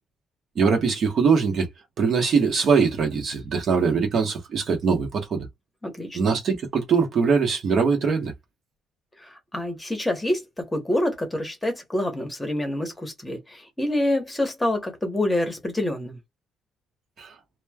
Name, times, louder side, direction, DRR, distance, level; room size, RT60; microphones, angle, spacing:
voice 1, 0.6-1.7 2.0-5.5 6.1-8.3 17.2-17.3, right 5 dB, 50° right, 1.0 m, -22 dB
voice 2, 5.8-6.3 9.2-16.2, left 1 dB, 10° left, 0.9 m, -27 dB
3.0 x 2.1 x 2.2 m
cardioid pair, 120°, 0 cm